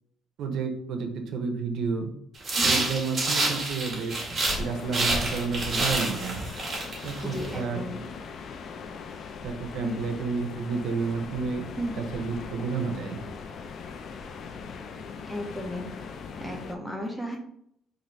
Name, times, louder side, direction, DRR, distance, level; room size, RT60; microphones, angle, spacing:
voice 1, 0.4-2.1 2.6-4.1 4.6-6.4 7.0-7.9 9.4-11.6 12.0-13.2, right 5 dB, 65° right, 4 dB, 0.6 m, -30 dB
sound 1, 2.4-4.6 4.9-7.5, right 2 dB, 30° right, 1.0 m, -28 dB
sound 2, 4.5-16.8, left 4 dB, 45° left, 0.3 m, -40 dB
voice 2, 7.2-8.1 9.8-10.0 11.8-11.9 15.2-15.9 16.3-17.4, equal, 5° left, 0 dB, 0.6 m, -34 dB
3.9 x 2.5 x 3.1 m, 0.72 s
cardioid pair, 160°, 0 cm